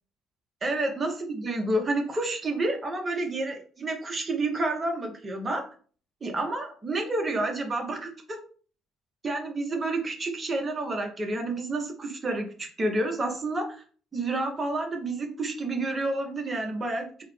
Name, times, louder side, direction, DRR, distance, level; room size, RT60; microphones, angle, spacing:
voice 1, 0.6-5.7 6.2-8.4 9.2-13.8 14.1-17.2, right 2 dB, 35° right, 4 dB, 1.1 m, -29 dB
3.8 x 2.3 x 3.3 m, 0.42 s
hypercardioid pair, 55°, 0 cm